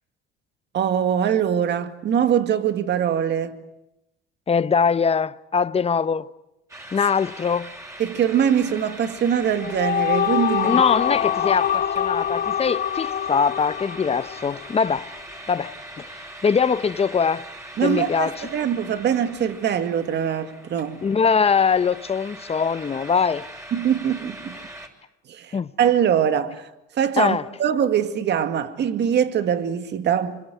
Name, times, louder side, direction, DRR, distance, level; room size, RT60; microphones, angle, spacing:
voice 1, 0.7-3.6 8.0-10.8 17.8-21.0 23.7-24.6 25.3-26.7 26.9-30.4, right 8 dB, 55° right, 2.2 m, -23 dB
voice 2, 4.5-6.3 6.9-7.7 10.6-15.1 15.5-17.4 17.8-18.5 21.0-23.5 25.5-25.7 27.2-27.5, left 6 dB, 30° left, 1.0 m, -22 dB
sound 1, 6.7-24.9, right 1 dB, 15° right, 6.7 m, -41 dB
sound 2, 9.4-14.9, left 10 dB, 45° left, 1.9 m, -24 dB
27.0 x 23.0 x 9.4 m
supercardioid pair, 80°, 21 cm